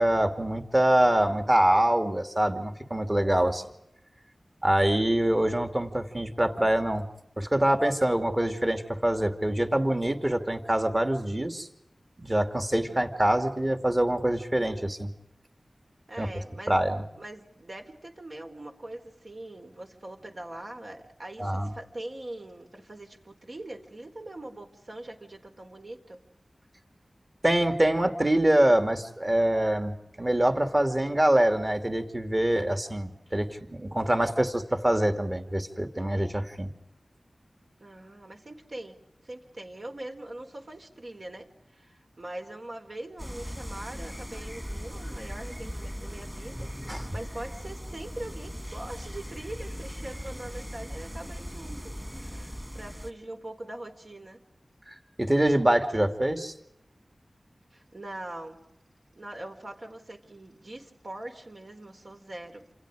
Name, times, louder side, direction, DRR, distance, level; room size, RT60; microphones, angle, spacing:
voice 1, 0.0-3.6 4.6-7.0 7.4-11.7 12.2-15.1 16.2-16.3 16.7-17.0 21.4-21.7 27.4-36.7 46.9-47.1 54.9-56.5, right 1 dB, 25° right, 7 dB, 2.8 m, -25 dB
voice 2, 3.3-3.7 12.7-13.1 16.1-16.9 17.2-26.2 37.8-54.4 57.7-58.6 59.1-62.7, right 1 dB, 60° right, 4 dB, 4.2 m, -42 dB
sound 1, 43.2-53.1, equal, 5° right, 2.2 m, -39 dB
28.5 x 28.0 x 5.1 m, 0.80 s
wide cardioid pair, 55°, 0 cm